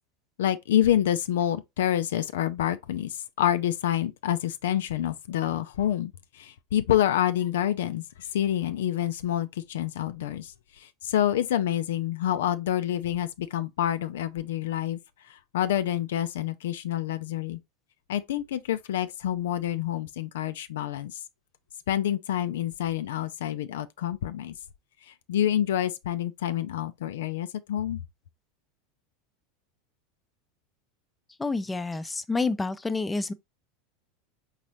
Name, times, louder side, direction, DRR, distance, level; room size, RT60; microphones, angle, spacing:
voice 1, 0.4-15.0 15.2-17.6 18.1-21.2 21.9-24.5 25.1-28.0, left 11 dB, 70° left, 0.3 m, -27 dB
voice 2, 31.4-33.3, left 3 dB, 10° left, 0.5 m, -28 dB
4.1 x 3.7 x 3.0 m
hypercardioid pair, 85°, 0 cm